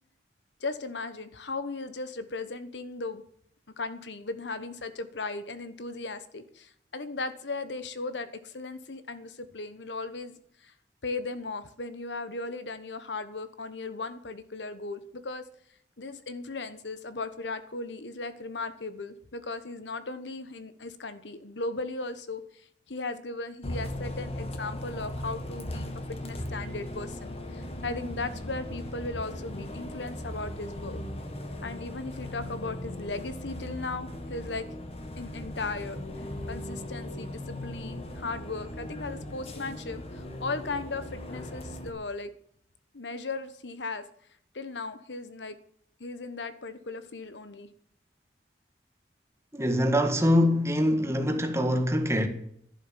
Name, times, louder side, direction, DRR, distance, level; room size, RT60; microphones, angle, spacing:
voice 1, 0.6-3.2 3.8-10.7 11.0-15.4 16.0-25.9 26.2-31.0 31.6-34.6 35.2-36.0 36.5-42.3 42.9-44.0 44.5-45.6 46.0-47.7, left 3 dB, 85° left, 1.2 m, -37 dB
Bus, 23.6-41.9, left 1 dB, 35° left, 1.7 m, -38 dB
voice 2, 49.5-52.3, equal, 15° right, 1.7 m, -24 dB
11.5 x 11.0 x 7.4 m
head